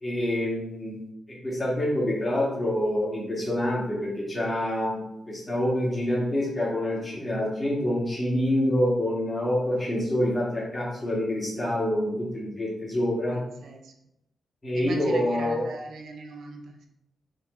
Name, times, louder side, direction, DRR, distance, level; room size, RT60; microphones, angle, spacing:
voice 1, 0.0-5.0 5.3-13.3 14.6-15.6, left 1 dB, 15° left, -6 dB, 2.3 m, -26 dB
voice 2, 13.3-13.9 14.7-16.9, right 3 dB, 80° right, 3 dB, 0.9 m, -40 dB
6.3 x 4.5 x 4.1 m, 0.85 s
wide cardioid pair, 165°, 0 cm